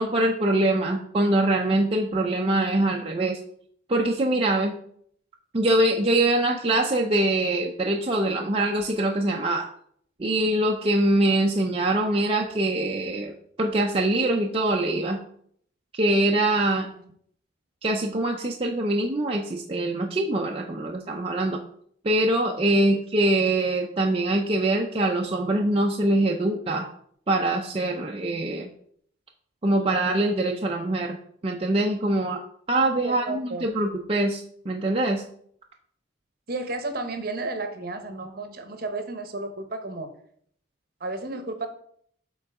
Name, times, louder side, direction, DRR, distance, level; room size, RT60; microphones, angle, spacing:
voice 1, 0.0-3.4 3.9-4.7 5.5-9.7 10.2-13.3 13.6-15.2 15.9-16.9 17.8-21.6 22.0-26.9 27.3-28.7 29.6-31.2 31.4-32.4 32.7-35.2, right 1 dB, 30° right, 0 dB, 0.5 m, -23 dB
voice 2, 33.0-33.7 36.5-40.1 41.0-41.7, right 2 dB, 50° right, 7 dB, 0.8 m, -32 dB
6.9 x 3.8 x 4.7 m, 0.64 s
head